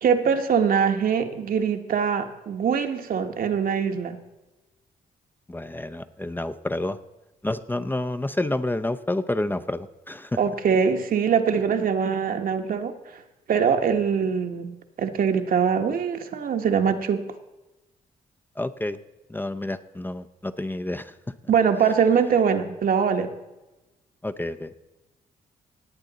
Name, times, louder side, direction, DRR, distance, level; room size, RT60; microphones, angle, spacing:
voice 1, 0.0-4.2 10.4-13.2 13.5-17.3 21.5-23.3, right 7 dB, 65° right, 6 dB, 1.2 m, -23 dB
voice 2, 5.5-7.0 7.4-10.4 18.6-19.0 19.3-21.1 24.2-24.7, left 1 dB, 10° left, 9 dB, 0.6 m, -29 dB
18.0 x 8.3 x 4.0 m, 1.0 s
cardioid pair, 70°, 16 cm